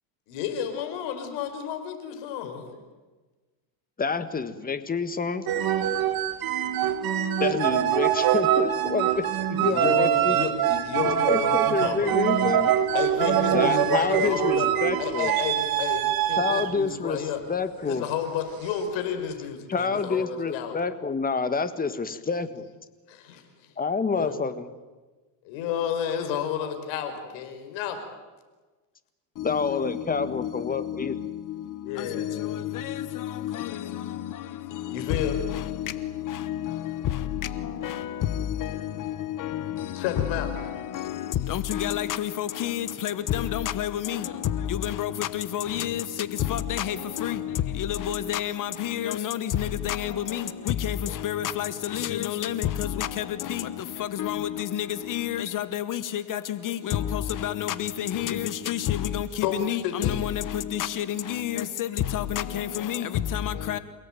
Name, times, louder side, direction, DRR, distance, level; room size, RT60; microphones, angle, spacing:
voice 1, 0.3-2.8 9.6-12.5 12.9-14.7 15.0-17.4 17.9-20.8 23.1-23.4 24.1-24.4 25.4-28.0 31.8-32.6 34.9-35.4 40.0-40.5 59.4-60.2, left 8 dB, 70° left, 5.3 m, -31 dB
voice 2, 4.0-5.5 7.4-10.4 11.3-12.7 13.5-15.3 16.4-18.1 19.7-22.7 23.8-24.7 29.4-31.2, left 4 dB, 20° left, 1.7 m, -28 dB
sound 1, 5.5-16.8 18.0-18.3, right 11 dB, 50° right, 2.1 m, -24 dB
voice 3, 29.3-63.8, left 11 dB, 40° left, 1.2 m, -30 dB
28.5 x 18.0 x 9.2 m
cardioid pair, 130°, 47 cm